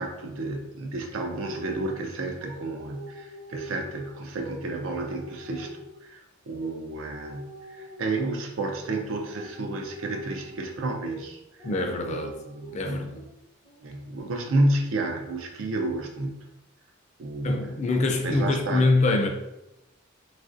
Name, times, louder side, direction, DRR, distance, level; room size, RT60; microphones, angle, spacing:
voice 1, 0.0-7.5 7.8-11.4 12.1-13.1 13.8-16.4 17.2-17.8 18.2-18.9, right 2 dB, 75° right, 0.5 m, -31 dB
sound 1, 1.2-2.0 2.4-2.6 2.9-4.6 4.9-6.0 6.6-6.7 7.1-8.4 8.7-9.0 9.3-10.6 11.0-11.2 11.6-12.8 13.1-13.3 13.6-14.2, equal, 40° right, 0.9 m, -44 dB
voice 2, 11.6-12.4 12.7-13.2 17.4-19.3, left 2 dB, 35° left, 0.3 m, -24 dB
3.1 x 2.4 x 2.5 m
head